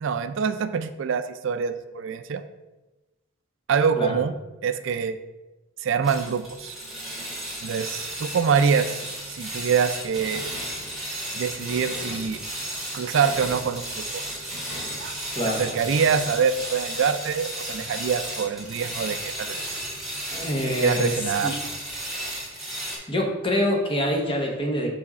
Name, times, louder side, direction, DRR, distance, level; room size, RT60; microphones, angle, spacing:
voice 1, 0.0-2.4 3.7-4.3 4.6-5.2 5.8-6.8 7.6-9.0 9.3-10.5 11.4-12.4 12.9-14.0 15.0-15.2 15.6-19.6 20.8-21.5, right 6 dB, 60° right, 11 dB, 0.4 m, -25 dB
sound 1, 6.0-23.0, right 1 dB, ahead, 2.1 m, -34 dB
voice 2, 20.3-21.6 23.1-24.9, equal, 25° left, 1 dB, 1.0 m, -25 dB
6.3 x 4.8 x 4.2 m, 1.1 s
head